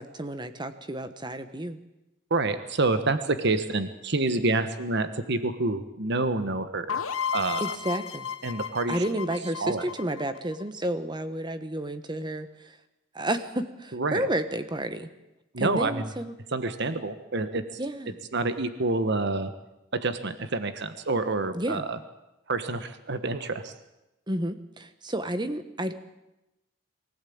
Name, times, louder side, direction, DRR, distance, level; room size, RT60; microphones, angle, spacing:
voice 1, 0.0-1.8 7.6-8.3 8.9-12.8 13.1-15.1 15.6-16.4 17.8-18.2 21.5-21.9 24.3-25.9, right 1 dB, 20° right, 10 dB, 1.2 m, -31 dB
voice 2, 2.3-7.0 7.3-7.6 8.4-9.0 9.6-9.8 13.9-14.2 15.5-16.1 16.5-17.6 18.3-19.5 19.9-22.0 22.5-23.7, right 3 dB, 55° right, 11 dB, 1.3 m, -27 dB
sound 1, 6.9-10.6, left 7 dB, 80° left, 1.3 m, -33 dB
23.5 x 15.5 x 8.7 m, 0.95 s
head